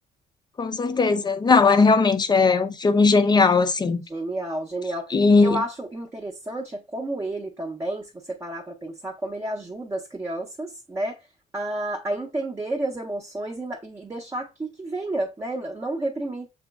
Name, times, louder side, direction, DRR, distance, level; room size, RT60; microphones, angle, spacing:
voice 1, 0.6-4.0 5.1-5.6, left 4 dB, 25° left, 0.5 m, -18 dB
voice 2, 4.1-11.2 11.5-16.5, right 1 dB, 15° right, 0.7 m, -31 dB
6.7 x 3.0 x 2.3 m
cardioid pair, 110°, 17 cm